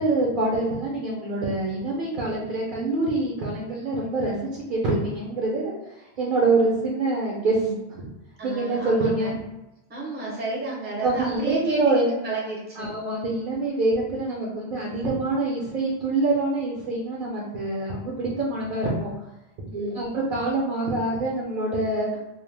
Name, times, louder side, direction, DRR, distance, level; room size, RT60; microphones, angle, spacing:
voice 1, 0.0-5.7 6.2-7.7 8.0-8.1 8.4-9.4 11.0-12.1 12.8-19.1 19.7-22.1, right 2 dB, 60° right, -3 dB, 0.6 m, -25 dB
voice 2, 7.4-7.8 8.4-9.3 9.9-12.9 19.7-20.1, right 3 dB, 15° right, -5 dB, 0.5 m, -31 dB
2.2 x 2.1 x 3.1 m, 1.0 s
omnidirectional pair, 1.1 m